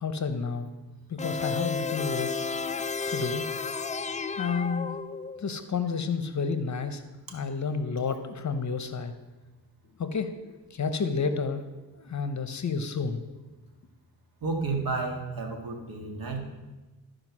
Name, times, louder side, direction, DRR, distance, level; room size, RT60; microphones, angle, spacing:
voice 1, 0.0-0.7 1.1-2.3 3.1-3.5 4.4-5.0 5.4-7.0 7.3-9.1 10.0-11.6 12.0-13.2, left 5 dB, 50° left, 10 dB, 0.8 m, -30 dB
sound 1, 1.2-5.5, left 4 dB, 20° left, 0.3 m, -32 dB
voice 2, 14.4-16.4, right 3 dB, 65° right, 2 dB, 1.8 m, -31 dB
13.0 x 5.0 x 6.1 m, 1.2 s
cardioid pair, 80°, 38 cm